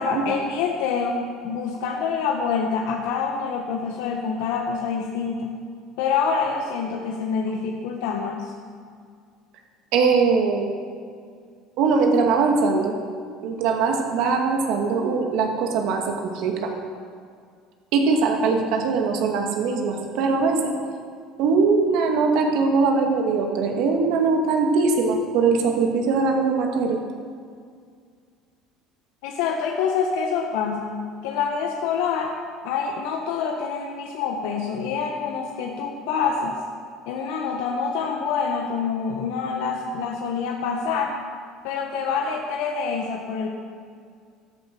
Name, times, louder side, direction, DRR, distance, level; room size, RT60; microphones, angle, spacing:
voice 1, 0.0-5.5 6.0-8.5 29.2-32.3 32.6-36.6 37.1-41.1 41.6-43.5, left 5 dB, 85° left, 0 dB, 1.4 m, -26 dB
voice 2, 9.9-10.7 11.8-12.9 13.4-16.8 17.9-20.7 21.4-27.0, right 4 dB, 60° right, 2 dB, 2.2 m, -21 dB
14.0 x 13.0 x 6.2 m, 2.1 s
cardioid pair, 165°, 0 cm